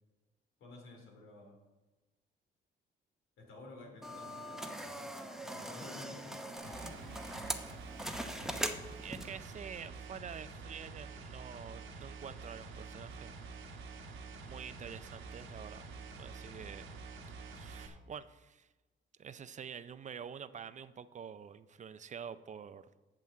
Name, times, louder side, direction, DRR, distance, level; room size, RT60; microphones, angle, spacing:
voice 1, 0.6-1.6 3.4-5.1 5.4-7.2, left 2 dB, 85° left, 1 dB, 2.6 m, -53 dB
sound 1, 4.0-9.5, right 1 dB, ahead, 0.8 m, -41 dB
sound 2, 6.6-17.9, right 4 dB, 80° right, 1.2 m, -48 dB
voice 2, 8.8-13.5 14.4-16.9 17.3-18.7 19.2-22.9, right 7 dB, 40° right, 14 dB, 0.4 m, -47 dB
7.7 x 5.7 x 7.4 m, 1.2 s
cardioid pair, 90°, 20 cm